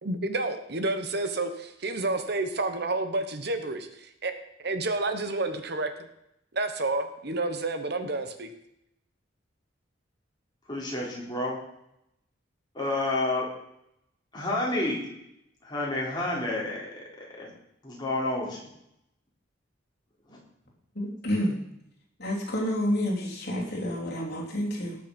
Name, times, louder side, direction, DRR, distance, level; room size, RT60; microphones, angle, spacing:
voice 1, 0.0-4.3 4.6-5.9 6.5-8.5, right 2 dB, 55° right, 8 dB, 1.1 m, -30 dB
voice 2, 10.7-11.6 12.7-13.5 14.3-15.1 15.6-17.5 17.8-18.6 20.3-20.4, left 2 dB, 20° left, -4 dB, 3.6 m, -30 dB
voice 3, 20.9-21.6 22.2-25.0, equal, 50° left, -3 dB, 3.3 m, -29 dB
18.5 x 6.6 x 5.3 m, 0.80 s
head